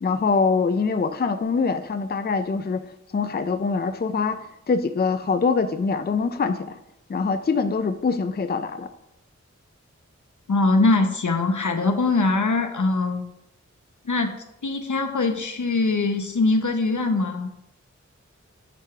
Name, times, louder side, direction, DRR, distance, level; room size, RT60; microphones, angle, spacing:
voice 1, 0.0-6.8 7.1-8.9, left 4 dB, 35° left, 10 dB, 0.4 m, -24 dB
voice 2, 10.5-13.2 14.0-17.5, left 3 dB, 80° left, 6 dB, 0.9 m, -22 dB
8.2 x 3.4 x 5.7 m, 0.82 s
wide cardioid pair, 55°, 30 cm